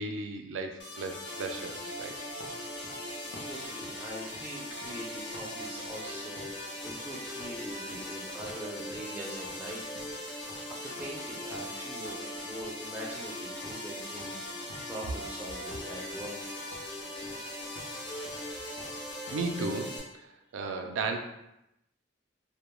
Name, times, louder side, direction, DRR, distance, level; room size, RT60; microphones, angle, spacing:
voice 1, 0.0-2.1 19.3-21.2, right 3 dB, 85° right, 5 dB, 0.3 m, -35 dB
sound 1, 0.8-20.0, left 1 dB, 65° left, 0.9 m, -40 dB
sound 2, 2.4-5.6 5.8-6.1 6.4-8.7 8.9-9.2 9.4-12.3 12.6-13.4 13.6-13.9 14.2-15.4 15.7-16.5 16.7-19.5, left 1 dB, 90° left, 0.6 m, -51 dB
voice 2, 3.4-14.5 14.9-16.3, equal, 10° right, -3 dB, 0.3 m, -43 dB
2.2 x 2.1 x 3.0 m, 0.87 s
head